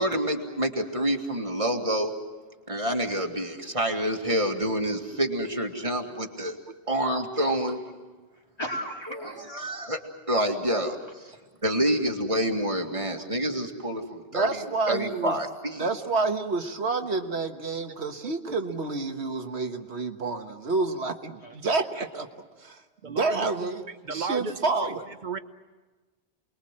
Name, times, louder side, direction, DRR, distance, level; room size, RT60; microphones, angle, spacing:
voice 1, 0.0-2.1 2.7-6.6 6.9-7.8 9.5-10.0 10.3-11.0 11.6-14.5 14.9-15.9, right 1 dB, 30° right, 3 dB, 2.2 m, -27 dB
voice 2, 7.3-7.8 8.3-9.5 11.3-11.4 21.4-22.3, equal, 25° left, -1 dB, 3.4 m, -38 dB
voice 3, 14.3-15.4 15.8-22.3 22.6-23.8 24.1-25.0, right 3 dB, 75° right, 6 dB, 1.7 m, -29 dB
voice 4, 18.2-18.5 23.0-23.5 24.0-25.4, right 4 dB, 45° right, 11 dB, 1.0 m, -35 dB
29.0 x 21.5 x 7.5 m, 1.3 s
omnidirectional pair, 1.1 m